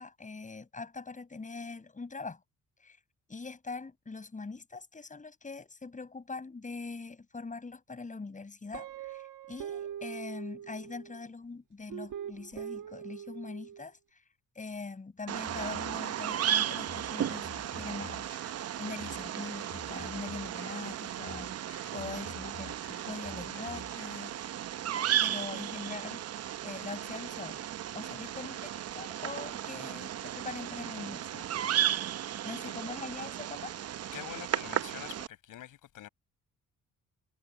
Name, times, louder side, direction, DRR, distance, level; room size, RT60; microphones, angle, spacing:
voice 1, 0.0-2.4 2.8-3.0 3.3-24.4 25.2-27.6 27.9-31.5 32.4-33.8, left 4 dB, 25° left, 6.8 m, -43 dB
Guitar, 8.7-11.2 11.9-13.8, right 9 dB, 70° right, 1.7 m, -42 dB
Bird vocalization bird call bird song, 15.3-35.3, right 11 dB, 50° right, 0.7 m, -35 dB
sound 1, 15.5-24.5, left 6 dB, 40° left, 6.8 m, -51 dB
voice 2, 34.1-36.1, left 12 dB, 75° left, 6.8 m, -45 dB
cardioid pair, 105°, 32 cm